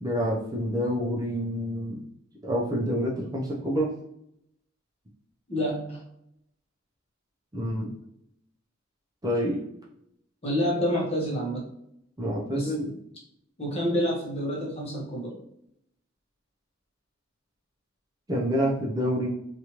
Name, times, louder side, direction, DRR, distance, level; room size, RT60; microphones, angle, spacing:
voice 1, 0.0-2.1 2.4-3.9 7.5-7.9 9.2-9.6 12.2-12.9 18.3-19.3, equal, 20° right, -4 dB, 0.5 m, -27 dB
voice 2, 5.5-6.0 10.4-11.6 12.5-12.7 13.6-15.3, equal, 30° left, -3 dB, 0.9 m, -28 dB
3.0 x 2.4 x 2.9 m, 0.75 s
head